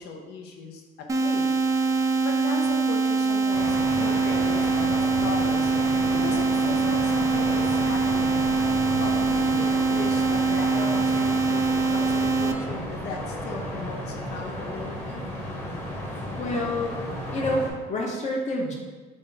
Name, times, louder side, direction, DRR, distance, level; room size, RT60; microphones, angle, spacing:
voice 1, 0.0-1.5 2.2-5.7 6.1-8.4 9.0-15.3, left 4 dB, 75° left, 1 dB, 0.6 m, -37 dB
sound 1, 1.1-12.5, right 4 dB, 20° right, 0.3 m, -23 dB
sound 2, 3.5-17.7, left 1 dB, 10° left, 0.9 m, -33 dB
voice 2, 16.4-17.0 17.3-18.7, left 1 dB, 45° left, -1 dB, 0.8 m, -28 dB
4.0 x 2.5 x 3.8 m, 1.4 s
cardioid pair, 110°, 17 cm